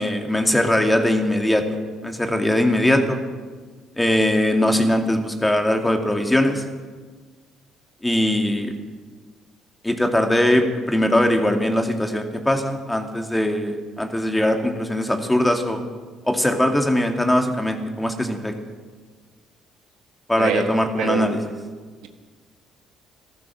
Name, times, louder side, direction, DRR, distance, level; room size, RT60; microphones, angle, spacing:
voice 1, 0.0-1.7 2.0-3.2 3.9-6.6 8.0-8.7 9.8-15.8 16.2-18.5 20.3-21.4, left 1 dB, 10° left, 4 dB, 2.3 m, -21 dB
voice 2, 21.0-21.5, right 9 dB, 80° right, 6 dB, 1.4 m, -25 dB
15.0 x 13.5 x 6.4 m, 1.5 s
supercardioid pair, 65°, 0 cm